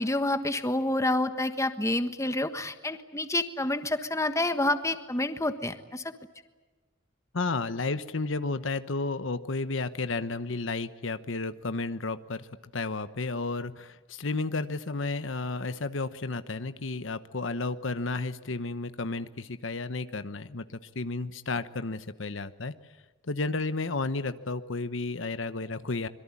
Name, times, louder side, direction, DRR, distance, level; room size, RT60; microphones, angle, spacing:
voice 1, 0.0-6.0, left 1 dB, 15° left, 9 dB, 1.4 m, -28 dB
voice 2, 7.3-12.5 12.7-22.7 23.2-26.1, left 3 dB, 75° left, 12 dB, 1.1 m, -32 dB
25.5 x 23.0 x 8.5 m, 1.3 s
head